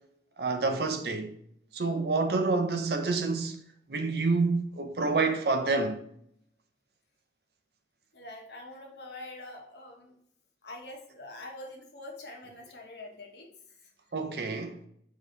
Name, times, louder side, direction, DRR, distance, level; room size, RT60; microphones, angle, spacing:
voice 1, 0.4-1.3 1.7-3.6 3.9-6.0 14.1-14.8, right 3 dB, 60° right, 0.5 m, -28 dB
voice 2, 8.1-10.1 10.6-13.5, left 2 dB, 70° left, 1.0 m, -45 dB
5.1 x 2.8 x 3.7 m
head